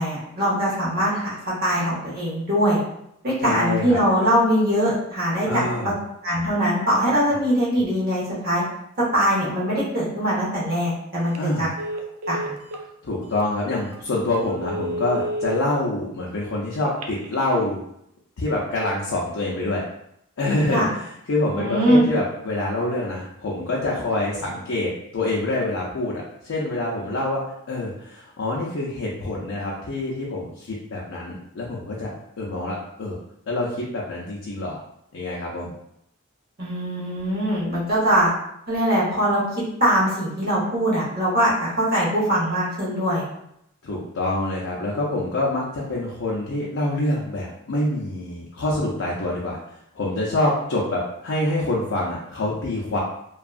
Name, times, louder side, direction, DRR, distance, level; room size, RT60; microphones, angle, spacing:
voice 1, 0.0-2.8 3.2-5.9 6.2-8.6 9.0-11.7 12.3-12.5 20.7-20.9 21.5-22.0 36.6-38.3 38.7-43.2, equal, 45° right, -7 dB, 1.1 m, -22 dB
voice 2, 3.4-4.0 5.4-5.9 11.4-11.7 13.0-17.8 18.4-19.8 20.4-27.4 27.7-32.1 32.4-33.2 33.5-34.8 35.1-35.7 43.8-49.6 49.9-53.0, left 2 dB, 80° left, -4 dB, 0.5 m, -26 dB
Telephone, 11.2-11.4 11.8-12.8 13.4-13.5 13.9-14.0 14.5-15.6 16.8-17.4, equal, 85° right, 0.4 m, -30 dB
2.6 x 2.3 x 2.4 m, 0.76 s
head